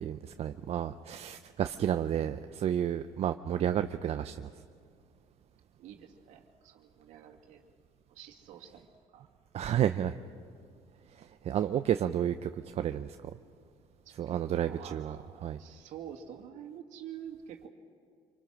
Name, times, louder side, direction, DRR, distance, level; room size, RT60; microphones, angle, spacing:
voice 1, 0.0-4.5 9.5-10.2 11.2-12.5 12.8-13.2 14.2-15.2 15.4-15.6, right 10 dB, 55° right, 9 dB, 0.7 m, -31 dB
voice 2, 5.8-7.7 8.1-9.3 14.1-14.4 14.6-17.7, right 9 dB, 70° right, 1 dB, 2.5 m, -48 dB
26.5 x 25.0 x 6.3 m, 2.2 s
supercardioid pair, 65°, 13 cm